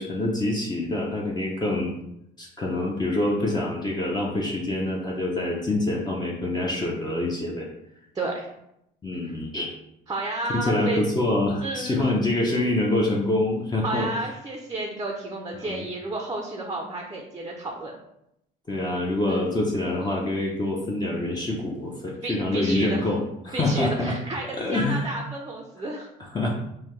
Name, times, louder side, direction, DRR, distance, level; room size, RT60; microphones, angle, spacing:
voice 1, 0.0-1.9 2.4-7.7 9.0-9.7 10.5-14.1 15.6-15.8 18.7-23.2 23.4-24.1 24.6-25.1 26.0-26.5, left 2 dB, 20° left, -2 dB, 0.7 m, -26 dB
voice 2, 8.1-8.5 9.2-9.4 10.1-11.1 11.6-12.0 13.8-17.9 19.3-19.4 22.2-23.1 23.5-26.1, right 2 dB, 20° right, 1 dB, 0.6 m, -31 dB
5.5 x 2.2 x 3.2 m, 0.80 s
cardioid pair, 105°, 20 cm